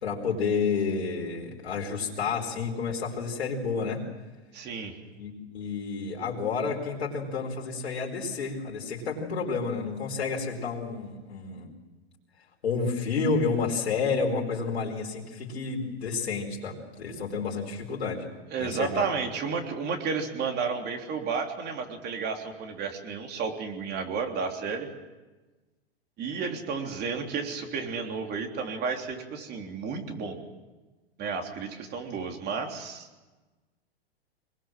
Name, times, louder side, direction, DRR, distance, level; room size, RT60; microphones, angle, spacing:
voice 1, 0.0-4.0 5.2-11.7 12.6-18.3 18.6-19.1, left 5 dB, 80° left, -2 dB, 4.9 m, -30 dB
voice 2, 4.5-4.9 18.5-24.9 26.2-30.4 31.2-33.1, right 5 dB, 30° right, 4 dB, 3.5 m, -32 dB
24.5 x 21.0 x 7.6 m, 1.2 s
hypercardioid pair, 125°, 32 cm